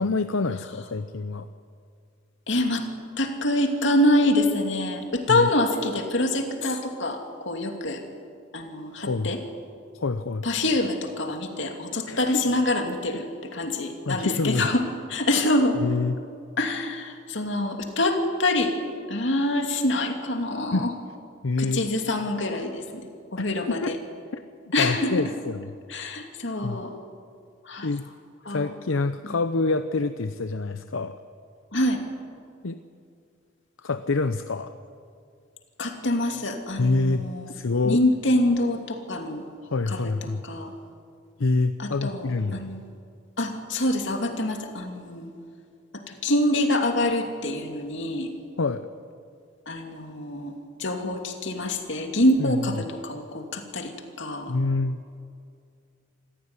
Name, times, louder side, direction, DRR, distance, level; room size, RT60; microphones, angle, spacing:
voice 1, 0.0-1.5 5.3-5.5 9.1-9.3 9.9-10.4 12.1-12.4 14.0-14.7 15.8-16.2 20.7-20.9 21.4-21.8 23.4-23.5 23.8-23.9 24.3-24.4 24.8-25.7 26.6-26.8 27.8-28.1 28.5-31.2 32.6-32.8 33.8-34.7 36.8-38.0 39.6-40.4 41.4-42.7 48.6-48.9 52.4-52.9 54.5-55.2, left 3 dB, 80° left, 10 dB, 0.7 m, -26 dB
voice 2, 2.5-2.9 3.2-8.0 8.5-9.4 10.4-13.2 13.5-14.8 15.1-15.8 16.6-18.7 19.1-20.9 21.6-22.8 23.3-24.0 24.7-25.2 25.9-26.9 27.6-27.9 28.5-28.7 31.7-32.0 35.8-37.5 37.8-39.4 39.9-40.1 40.4-40.7 41.8-42.8 43.4-45.3 46.1-48.3 49.7-50.5 50.8-53.9 54.2-54.5, left 1 dB, 60° left, 4 dB, 2.7 m, -25 dB
27.0 x 15.5 x 9.7 m, 2.3 s
head